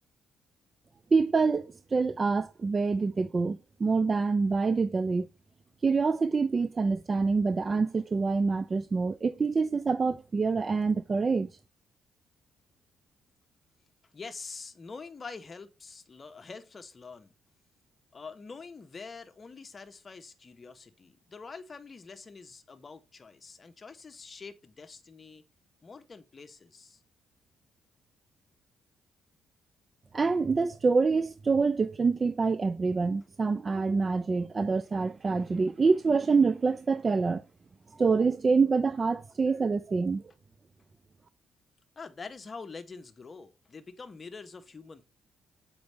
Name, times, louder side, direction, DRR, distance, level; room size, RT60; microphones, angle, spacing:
voice 1, 1.1-5.3 5.8-11.5 30.1-37.4 38.0-40.2, right 4 dB, 35° right, 0.4 m, -26 dB
voice 2, 14.1-17.3 18.1-25.4 25.8-27.0 42.0-45.0, left 4 dB, 35° left, 1.0 m, -45 dB
7.8 x 5.3 x 3.4 m
cardioid pair, 90°, 0 cm